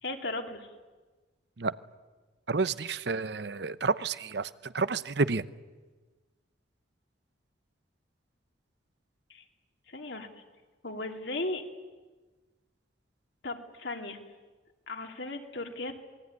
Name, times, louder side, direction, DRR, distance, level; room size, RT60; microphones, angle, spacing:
voice 1, 0.0-0.7 9.3-9.4 9.9-10.3 10.8-11.6 13.4-14.2 14.9-15.9, left 2 dB, 65° left, 4 dB, 2.8 m, -36 dB
voice 2, 2.5-5.4, right 4 dB, 60° right, 15 dB, 0.8 m, -30 dB
27.5 x 21.0 x 9.6 m, 1.3 s
head